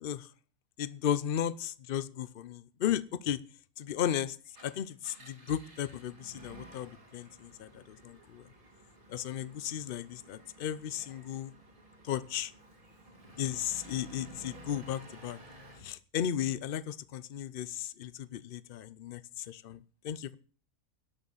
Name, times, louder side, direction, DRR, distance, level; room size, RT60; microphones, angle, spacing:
voice 1, 0.8-3.4 3.8-4.4 4.6-8.4 9.1-11.5 12.0-12.5 13.4-15.4 15.8-20.4, left 10 dB, 65° left, 16 dB, 0.5 m, -35 dB
Engine, 4.4-15.9, right 1 dB, 35° right, 2.2 m, -54 dB
11.5 x 6.5 x 7.2 m, 0.41 s
omnidirectional pair, 1.6 m